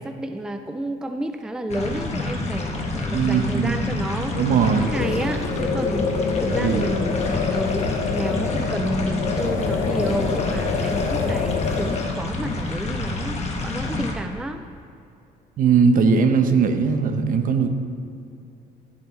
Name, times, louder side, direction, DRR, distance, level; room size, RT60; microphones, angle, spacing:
voice 1, 0.0-4.4 4.8-14.6, right 1 dB, 5° right, 7 dB, 0.4 m, -30 dB
sound 1, 1.7-14.1, left 2 dB, 40° left, 1.5 m, -28 dB
voice 2, 3.1-4.0 4.3-4.9 6.5-6.9 15.6-17.7, right 5 dB, 55° right, 7 dB, 0.9 m, -20 dB
sound 2, 4.8-12.2, left 5 dB, 65° left, 0.9 m, -26 dB
15.0 x 7.0 x 3.3 m, 2.6 s
cardioid pair, 110°, 17 cm